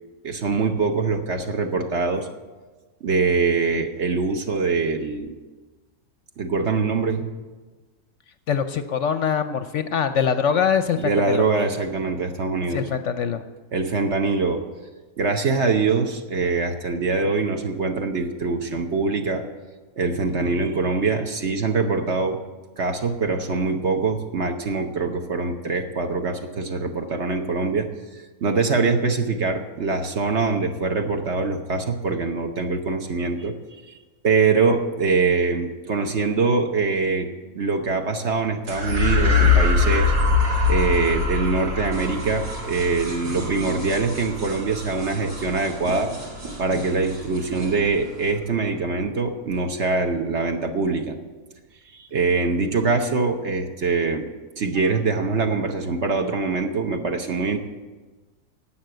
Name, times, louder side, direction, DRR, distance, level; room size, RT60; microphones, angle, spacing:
voice 1, 0.2-2.3 3.0-5.3 6.4-7.2 11.0-12.8 13.7-14.6 15.2-19.4 20.0-22.4 22.8-27.9 28.1-33.5 33.9-34.0 34.2-37.3 37.5-40.1 40.7-46.1 46.6-51.2 51.9-54.3 54.6-57.6, right 4 dB, 50° right, 5 dB, 1.1 m, -23 dB
voice 2, 8.5-11.4 12.7-13.4, left 7 dB, 65° left, 10 dB, 0.8 m, -23 dB
sound 1, 38.7-47.3, left 4 dB, 85° right, 2.8 m, -23 dB
sound 2, 41.9-48.3, right 1 dB, 70° right, 5.2 m, -38 dB
11.5 x 8.6 x 7.7 m, 1.3 s
omnidirectional pair, 1.6 m